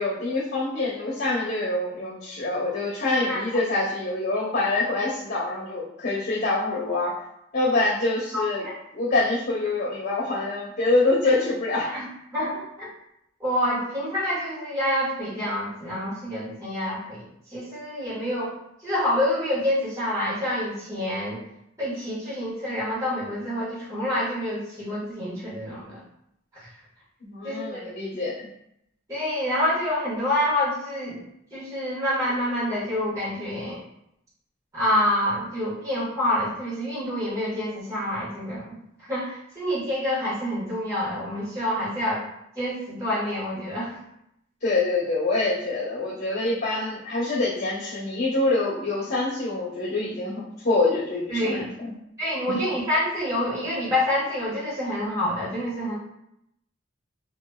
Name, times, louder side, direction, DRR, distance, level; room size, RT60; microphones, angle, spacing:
voice 1, 0.0-7.1 7.5-8.7 8.9-11.9 27.2-28.5 44.6-51.9 52.5-52.6, left 2 dB, 50° left, -9 dB, 1.2 m, -25 dB
voice 2, 8.3-8.7 11.8-12.1 12.3-12.9 13.4-17.2 17.5-18.5 18.8-21.4 21.8-26.0 27.4-27.8 29.1-31.2 31.5-33.8 34.7-38.7 39.1-42.2 42.5-43.9 51.3-51.7 52.2-55.9, left 1 dB, 15° right, -11 dB, 1.4 m, -27 dB
2.9 x 2.9 x 2.3 m, 0.78 s
head